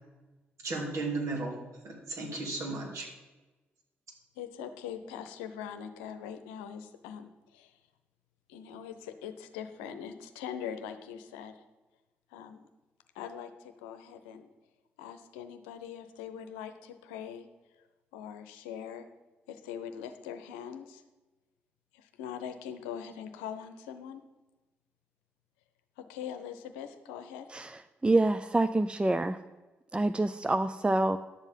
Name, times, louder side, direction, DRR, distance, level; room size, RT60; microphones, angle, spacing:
voice 1, 0.6-1.6 1.8-3.1, right 3 dB, 60° right, 0 dB, 2.9 m, -34 dB
voice 2, 4.4-7.8 8.5-11.5 12.3-12.7 13.1-14.5 15.0-17.5 18.1-19.1 19.5-21.0 21.9-24.2 26.0-27.5, left 8 dB, 85° left, 8 dB, 0.7 m, -42 dB
voice 3, 27.5-29.4 29.9-31.2, right 2 dB, 20° right, 12 dB, 0.5 m, -27 dB
11.0 x 7.2 x 5.3 m, 1.1 s
hypercardioid pair, 45°, 6 cm